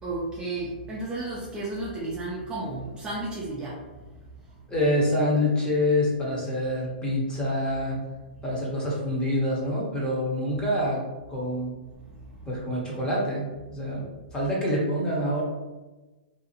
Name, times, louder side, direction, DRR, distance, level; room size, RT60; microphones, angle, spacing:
voice 1, 0.0-4.6 11.9-12.5, right 2 dB, 15° right, -5 dB, 0.5 m, -34 dB
voice 2, 4.7-8.0 8.4-11.0 11.3-11.7 12.5-14.1 14.3-15.4, left 1 dB, 15° left, -4 dB, 0.9 m, -26 dB
2.7 x 2.3 x 2.8 m, 1.1 s
hypercardioid pair, 125°, 6 cm